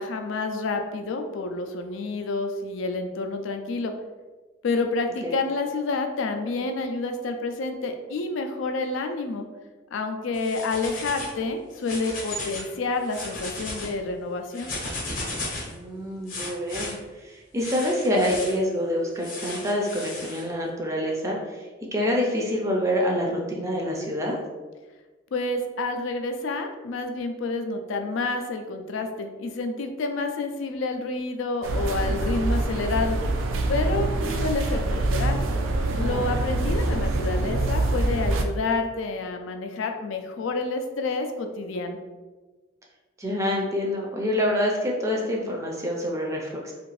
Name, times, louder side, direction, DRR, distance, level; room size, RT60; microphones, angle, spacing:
voice 1, 0.0-3.9 4.6-9.5 9.9-14.7 25.3-33.2 33.7-35.4 36.0-42.0, left 3 dB, 75° left, 6 dB, 0.4 m, -29 dB
sound 1, 10.3-11.4 11.7-12.7 13.0-13.9 14.5-15.7 16.3-16.9 17.6-18.6 19.2-20.4, left 2 dB, 40° left, 0.7 m, -35 dB
voice 2, 15.7-16.9 17.2-24.4 36.0-36.4 43.2-46.7, equal, 15° right, -1 dB, 0.4 m, -26 dB
sound 2, 31.6-38.4, right 2 dB, 85° right, 0.4 m, -25 dB
2.6 x 2.4 x 3.1 m, 1.3 s
head